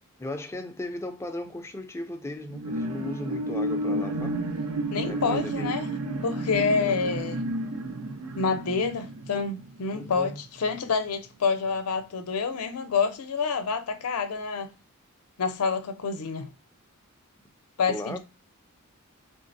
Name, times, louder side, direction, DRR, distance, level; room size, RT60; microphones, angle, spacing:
voice 1, 0.2-4.4 5.0-5.8 6.8-7.1 9.9-10.4 17.9-18.2, left 1 dB, 10° left, 0.4 m, -36 dB
sound 1, 2.4-10.2 10.7-10.8, right 1 dB, 75° right, 0.5 m, -31 dB
voice 2, 4.9-5.9 6.2-7.4 8.3-14.7 15.4-16.5 17.8-18.2, left 5 dB, 85° left, 0.5 m, -28 dB
3.7 x 2.0 x 2.5 m
head